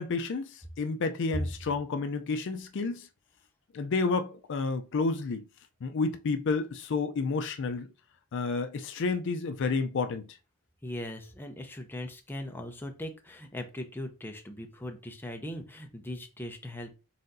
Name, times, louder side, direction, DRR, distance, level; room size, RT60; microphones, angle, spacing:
voice 1, 0.0-3.1 3.7-5.4 5.8-7.9 8.3-10.4, left 4 dB, 60° left, 0.4 m, -30 dB
voice 2, 10.8-16.9, left 1 dB, 10° left, 0.5 m, -39 dB
4.2 x 3.8 x 2.6 m
head